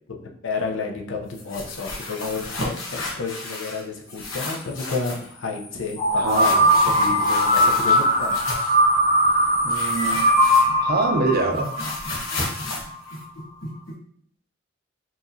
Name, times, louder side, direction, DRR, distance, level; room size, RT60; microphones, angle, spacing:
voice 1, 0.1-6.4 6.8-8.4, left 4 dB, 75° left, 2 dB, 0.7 m, -31 dB
sound 1, 1.3-3.8 4.1-5.3 6.3-8.8 9.7-11.0 11.3-13.9, left 2 dB, 90° left, 1.1 m, -33 dB
sound 2, 6.0-12.8, equal, 40° left, 1.0 m, -20 dB
voice 2, 6.2-6.7 9.6-10.3 10.8-11.7, right 3 dB, 50° right, 5 dB, 0.6 m, -25 dB
4.6 x 3.1 x 2.7 m, 0.63 s
head